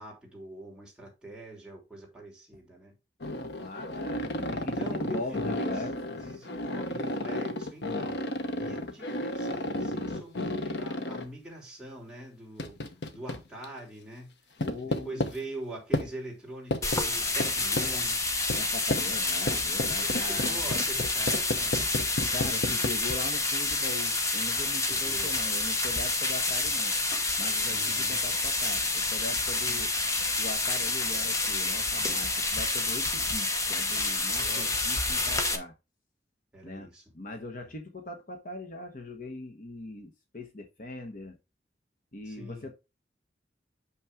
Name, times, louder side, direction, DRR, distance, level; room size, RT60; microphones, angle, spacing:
voice 1, 0.0-2.9 4.5-5.7 6.1-12.8 13.1-14.3 14.8-18.2 20.0-22.0 24.9-25.3 27.7-28.2 29.6-29.8 34.4-34.8 36.5-37.0 37.6-37.7 42.2-42.7, right 2 dB, 5° right, 3.1 m, -43 dB
sound 1, 3.2-11.3 12.6-13.7 14.6-15.3 15.9-16.1 16.7-17.0 17.4-17.9 18.5-18.6 18.9-19.1 19.5-22.9, left 1 dB, 70° left, 1.0 m, -32 dB
voice 2, 3.3-5.9 14.6-15.2 18.6-20.6 22.3-26.9 27.4-29.9 30.4-35.7 36.6-36.9 37.1-41.4 42.1-42.7, left 2 dB, 50° left, 1.1 m, -40 dB
sound 2, 16.8-35.6, left 2 dB, 20° left, 0.9 m, -28 dB
6.4 x 5.7 x 3.5 m
head